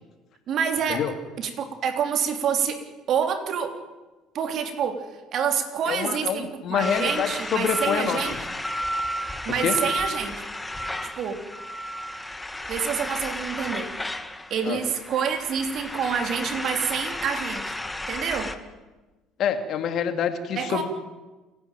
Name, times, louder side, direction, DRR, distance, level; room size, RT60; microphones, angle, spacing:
voice 1, 0.5-1.0 1.4-2.8 3.1-3.7 4.3-8.3 9.4-10.4 11.2-11.4 12.7-13.9 14.5-17.8 18.1-18.5 20.5-20.8, right 7 dB, 55° right, 6 dB, 3.3 m, -27 dB
voice 2, 5.9-8.2 9.6-9.7 14.6-14.8 19.4-20.8, left 8 dB, 60° left, 8 dB, 2.5 m, -26 dB
sound 1, 6.8-18.5, left 1 dB, 10° left, 1.7 m, -32 dB
28.5 x 10.5 x 9.1 m, 1.2 s
supercardioid pair, 75°, 0 cm